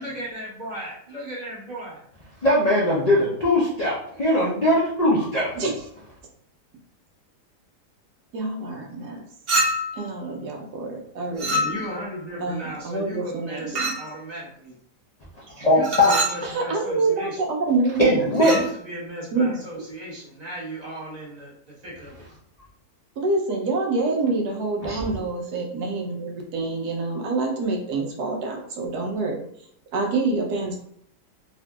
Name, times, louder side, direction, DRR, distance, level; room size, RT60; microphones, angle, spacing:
voice 1, 0.0-2.0 11.5-14.7 15.6-17.4 18.4-22.2, right 1 dB, 30° right, -6 dB, 1.0 m, -36 dB
voice 2, 2.4-5.6 15.6-16.1 16.4-16.5 18.0-18.6 24.8-25.0, left 1 dB, 85° left, -7 dB, 0.3 m, -20 dB
voice 3, 5.6-5.9 8.3-9.2 10.0-11.7 12.4-13.9 16.5-18.1 19.3-19.6 23.2-29.4 29.9-30.8, right 3 dB, 75° right, 1 dB, 1.2 m, -26 dB
Chink clink, 9.5-10.0 11.4-12.1 13.8-14.1 15.8-16.4 18.3-18.7, equal, 45° right, 0.8 m, -25 dB
3.7 x 2.6 x 2.2 m, 0.66 s
omnidirectional pair, 1.8 m